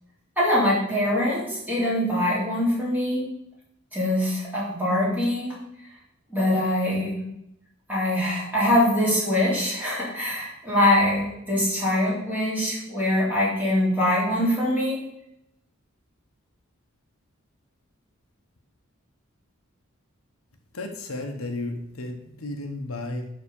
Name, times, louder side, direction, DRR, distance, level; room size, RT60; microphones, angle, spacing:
voice 1, 0.4-3.2 3.9-5.6 6.3-7.2 7.9-15.0, left 1 dB, 10° right, -7 dB, 3.5 m, -23 dB
voice 2, 20.7-23.3, left 2 dB, 85° left, 4 dB, 1.2 m, -33 dB
11.5 x 4.0 x 5.4 m, 0.78 s
head